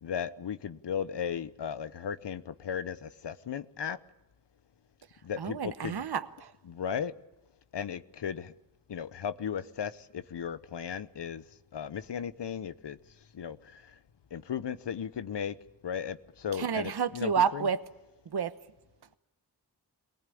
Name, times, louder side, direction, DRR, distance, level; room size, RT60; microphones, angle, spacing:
voice 1, 0.0-4.0 5.2-6.1 6.7-7.1 7.7-8.5 8.9-11.4 11.7-13.0 13.3-13.9 14.3-15.6 15.8-17.7, left 8 dB, 85° left, 1.0 m, -36 dB
voice 2, 5.4-6.5 16.5-17.8 18.3-18.5, right 7 dB, 70° right, 1.0 m, -30 dB
23.5 x 19.0 x 8.5 m
wide cardioid pair, 65°, 41 cm